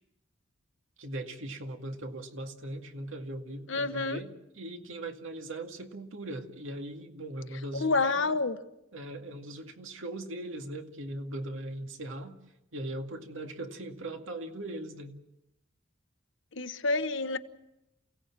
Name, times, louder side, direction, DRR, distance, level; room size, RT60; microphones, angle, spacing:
voice 1, 1.0-8.0 8.9-12.4 12.7-15.2, right 1 dB, 75° right, 5 dB, 2.2 m, -39 dB
voice 2, 3.7-4.2 7.7-8.6 16.5-17.4, left 3 dB, 65° left, 10 dB, 1.1 m, -28 dB
28.5 x 17.5 x 7.4 m, 0.90 s
head